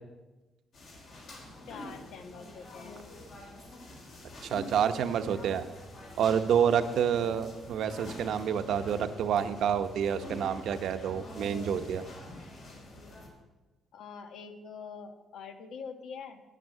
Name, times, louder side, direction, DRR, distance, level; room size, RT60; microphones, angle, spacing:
sound 1, 0.7-13.3, left 1 dB, 55° left, 3.9 m, -47 dB
voice 1, 1.7-3.0 13.9-16.4, left 5 dB, 75° left, 7 dB, 1.2 m, -44 dB
voice 2, 4.5-5.6 6.2-12.0, right 8 dB, 70° right, 9 dB, 0.8 m, -28 dB
10.0 x 9.2 x 7.3 m, 1.1 s
cardioid pair, 135°, 0 cm